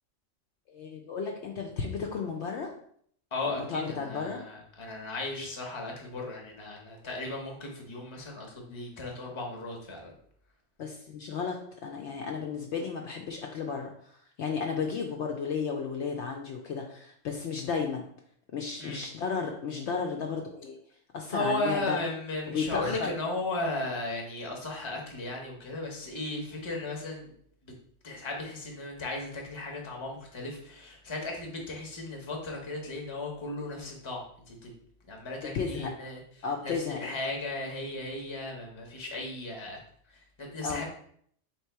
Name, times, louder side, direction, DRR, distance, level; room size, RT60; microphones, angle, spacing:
voice 1, 0.7-2.7 3.5-4.4 10.8-11.6 11.8-13.9 14.4-18.0 18.5-20.8 21.1-22.0 22.5-23.1 35.5-35.9 36.4-37.1 40.6-40.8, left 5 dB, 70° left, 2 dB, 0.8 m, -33 dB
voice 2, 3.3-10.1 18.8-19.0 21.3-27.3 27.6-27.7 28.0-34.2 34.5-34.7 35.1-36.2 36.6-39.8 40.4-40.8, left 2 dB, 25° left, 0 dB, 0.8 m, -36 dB
3.6 x 2.9 x 4.5 m, 0.63 s
omnidirectional pair, 1.3 m